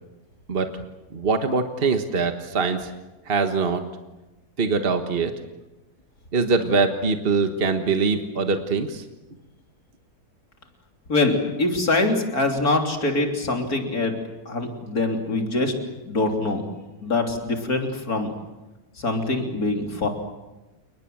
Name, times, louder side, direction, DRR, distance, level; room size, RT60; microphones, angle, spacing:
voice 1, 1.1-2.9 3.3-3.8 4.6-5.3 6.3-9.0, right 4 dB, 40° right, 6 dB, 1.6 m, -23 dB
voice 2, 11.1-14.1 14.5-15.7 16.0-16.6 17.0-18.3 19.0-20.1, left 2 dB, 85° left, 3 dB, 3.8 m, -24 dB
30.0 x 20.0 x 7.8 m, 1.0 s
omnidirectional pair, 1.5 m